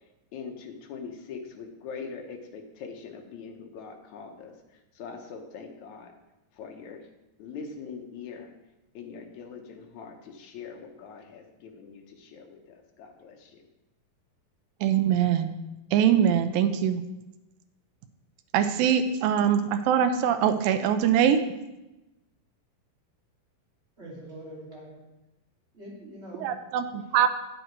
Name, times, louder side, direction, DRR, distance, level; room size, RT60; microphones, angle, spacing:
voice 1, 0.3-6.2 6.5-7.1 7.4-8.5 8.9-13.7, left 5 dB, 70° left, 3 dB, 1.9 m, -42 dB
voice 2, 14.8-15.6 15.9-17.0 18.5-21.4 26.4-27.3, right 9 dB, 80° right, 9 dB, 2.4 m, -23 dB
voice 3, 24.0-25.1 25.7-26.7, right 1 dB, 20° right, -6 dB, 2.6 m, -44 dB
9.2 x 7.9 x 4.6 m, 0.98 s
omnidirectional pair, 4.2 m